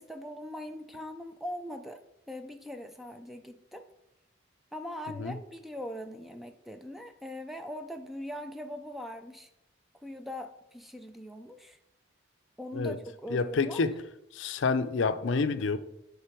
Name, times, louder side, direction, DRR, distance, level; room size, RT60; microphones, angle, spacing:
voice 1, 0.0-2.0 2.3-3.9 4.7-9.5 10.0-11.8 12.6-13.0 13.2-13.8, equal, ahead, 0.3 m, -41 dB
voice 2, 13.3-13.9 14.3-15.8, left 4 dB, 70° left, 0.5 m, -28 dB
11.0 x 3.7 x 4.5 m
head